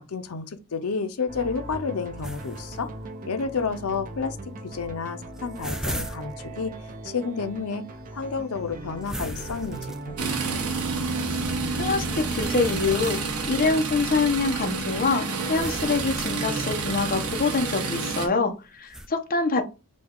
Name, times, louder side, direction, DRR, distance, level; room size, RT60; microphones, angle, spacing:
voice 1, 0.0-2.9 3.2-4.4 4.6-6.7 7.0-7.9 8.1-10.6, left 5 dB, 75° left, 0.6 m, -30 dB
sound 1, 1.3-17.4, right 1 dB, 40° right, 0.6 m, -40 dB
sound 2, 2.2-2.8 3.4-3.5 4.7-4.8 5.1-6.3 9.0-10.3 11.5-11.6 12.3-13.4 15.5-16.7 18.9-19.1, equal, ahead, 0.3 m, -36 dB
sound 3, 10.2-18.3, right 4 dB, 85° right, 1.0 m, -29 dB
voice 2, 11.7-19.6, left 4 dB, 40° left, 0.7 m, -25 dB
5.0 x 2.3 x 3.6 m
head